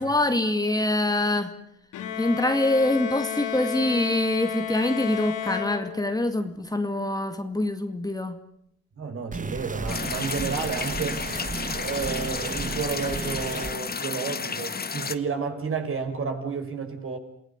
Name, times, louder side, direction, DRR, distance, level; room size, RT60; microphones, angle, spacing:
voice 1, 0.0-1.5 2.2-8.4, left 1 dB, 10° left, 2.1 m, -25 dB
Bowed string instrument, 1.9-6.4, left 10 dB, 90° left, 3.4 m, -32 dB
voice 2, 8.9-11.3 11.7-17.2, right 5 dB, 45° right, 5.9 m, -31 dB
sound 1, 9.3-13.7, right 4 dB, 25° right, 1.6 m, -34 dB
sound 2, 9.9-15.2, left 5 dB, 30° left, 1.5 m, -32 dB
28.5 x 17.0 x 9.6 m
cardioid pair, 90°, 30 cm